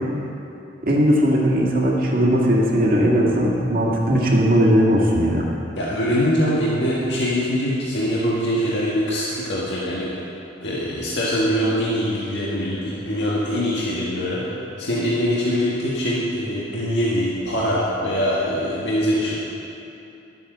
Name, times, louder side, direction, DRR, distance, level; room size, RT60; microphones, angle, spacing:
voice 1, 0.8-5.5, equal, 50° right, -3 dB, 2.0 m, -18 dB
voice 2, 5.7-10.2 10.6-14.4 14.8-19.3, equal, 65° left, -7 dB, 1.7 m, -23 dB
11.5 x 8.5 x 6.7 m, 2.9 s
head